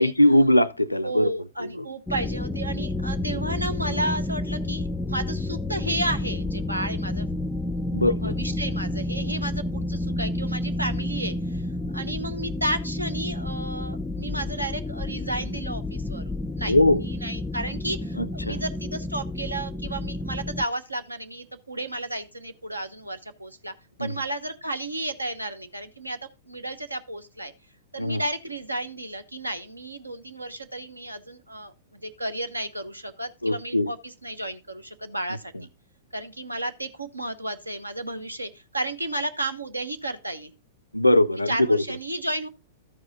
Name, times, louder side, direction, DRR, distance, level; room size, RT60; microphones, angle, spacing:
voice 1, 0.0-1.3 1.6-1.9 7.9-8.3 16.7-17.0 18.2-18.6 24.0-24.1 28.0-28.2 33.4-33.9 40.9-41.8, left 1 dB, 85° left, 0.4 m, -21 dB
voice 2, 1.0-7.3 8.0-11.7 11.9-23.7 24.0-26.2 26.5-27.5 27.9-35.5 36.1-40.5 41.5-42.5, right 1 dB, 85° right, 1.1 m, -32 dB
sound 1, 2.1-20.7, left 2 dB, 10° left, 0.4 m, -30 dB
13.5 x 4.8 x 4.1 m
figure-of-eight pair, 100°, 0 cm